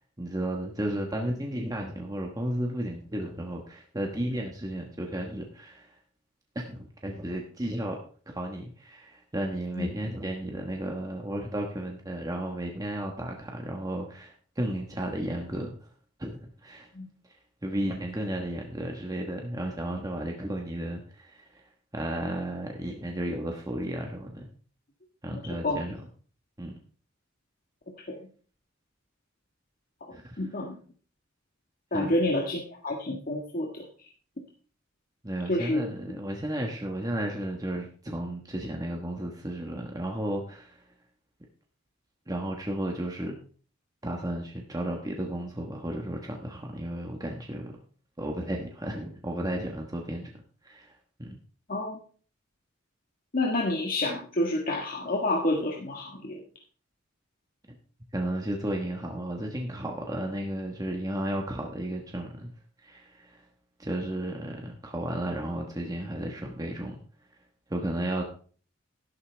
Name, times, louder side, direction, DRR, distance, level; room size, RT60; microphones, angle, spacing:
voice 1, 0.2-5.9 6.5-8.0 8.3-15.7 16.2-16.9 17.6-21.5 21.9-24.5 25.2-26.0 26.6-26.8 30.1-30.4 31.9-32.2 35.2-40.8 42.3-43.4 44.0-47.7 48.2-50.3 50.6-50.9 51.2-51.4 58.1-62.5 62.8-63.4 63.8-67.0 67.7-68.2, right 1 dB, 20° right, 1 dB, 1.3 m, -33 dB
voice 2, 25.3-25.8 28.1-28.3 30.4-30.8 31.9-33.9 35.5-35.9 51.7-52.0 53.3-56.4, left 1 dB, 45° left, -1 dB, 1.6 m, -29 dB
12.5 x 11.5 x 3.4 m, 0.42 s
head